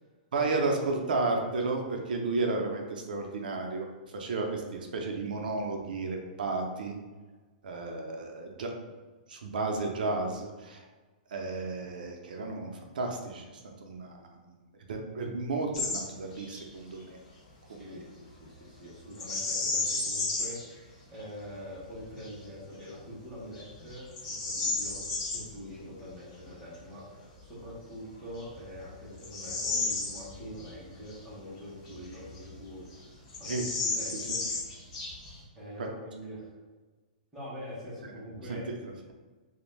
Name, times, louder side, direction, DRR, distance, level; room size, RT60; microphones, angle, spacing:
voice 1, 0.3-3.9 4.1-7.0 7.6-8.7 9.3-10.8 11.3-14.3 14.9-17.2 33.5-33.6 38.5-39.1, right 3 dB, 85° right, 2 dB, 0.5 m, -33 dB
Bird vocalization bird call bird song, 15.7-16.0 16.3-16.6 19.1-20.6 21.2-21.3 21.9-22.3 22.9-23.0 23.5-25.4 27.5-27.6 28.3-30.7 31.1-31.2 31.9-32.7 32.9-33.0 33.3-35.4, left 3 dB, 35° left, 0.8 m, -33 dB
voice 2, 17.7-25.0 25.3-33.5 33.8-34.4 35.5-36.5 37.3-38.7, equal, 5° right, -10 dB, 0.8 m, -44 dB
2.5 x 2.1 x 3.1 m, 1.3 s
hypercardioid pair, 175°, 5 cm